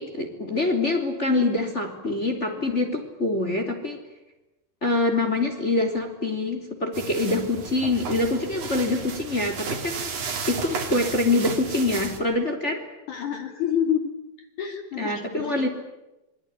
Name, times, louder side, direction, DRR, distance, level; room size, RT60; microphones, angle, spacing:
voice 1, 0.0-4.0 4.8-10.1 10.5-12.8 15.0-15.7, left 2 dB, 20° left, 4 dB, 3.3 m, -25 dB
voice 2, 2.6-2.9 13.1-14.1 14.6-15.6, left 9 dB, 60° left, 4 dB, 4.0 m, -28 dB
sound 1, 6.9-12.2, right 5 dB, 75° right, 4.9 m, -33 dB
27.5 x 22.0 x 9.9 m, 0.98 s
omnidirectional pair, 4.0 m